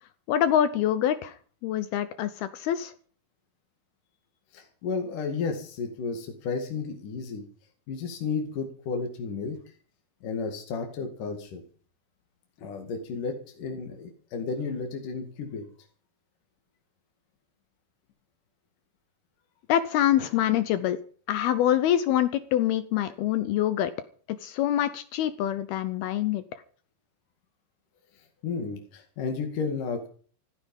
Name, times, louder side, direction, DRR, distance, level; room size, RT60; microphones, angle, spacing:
voice 1, 0.3-1.4 1.6-2.9 19.7-21.0 21.3-23.9 24.3-26.4, left 11 dB, 75° left, 13 dB, 2.4 m, -25 dB
voice 2, 4.5-7.4 7.9-9.6 10.2-11.6 12.6-15.6 28.4-30.1, left 5 dB, 55° left, 4 dB, 3.3 m, -32 dB
15.0 x 15.0 x 5.4 m, 0.43 s
omnidirectional pair, 5.2 m